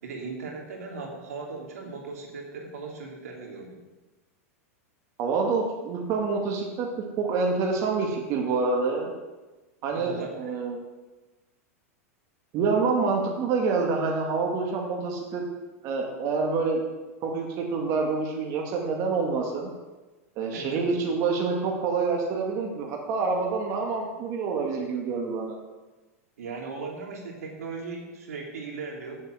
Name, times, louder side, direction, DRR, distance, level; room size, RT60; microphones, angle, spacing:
voice 1, 0.0-3.8 9.9-10.5 20.5-20.8 26.4-29.2, right 4 dB, 85° right, 0 dB, 3.0 m, -38 dB
voice 2, 5.2-6.9 7.2-9.1 9.8-10.8 12.5-15.4 15.8-16.8 17.2-19.7 20.4-25.6, right 4 dB, 45° right, 1 dB, 2.1 m, -27 dB
8.8 x 7.8 x 8.1 m, 1.2 s
hypercardioid pair, 125°, 8 cm